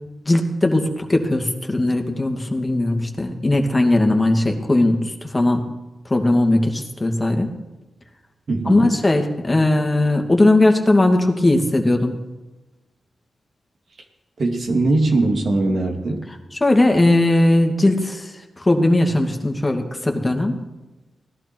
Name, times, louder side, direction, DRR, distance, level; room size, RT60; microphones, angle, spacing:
voice 1, 0.3-5.6 6.1-7.5 8.7-12.1 16.6-18.3 18.6-20.6, left 2 dB, 25° left, 3 dB, 2.4 m, -18 dB
voice 2, 8.5-8.9 14.4-16.3, right 2 dB, 65° right, 2 dB, 2.4 m, -20 dB
17.5 x 11.5 x 4.6 m, 1.1 s
supercardioid pair, 45°, 0 cm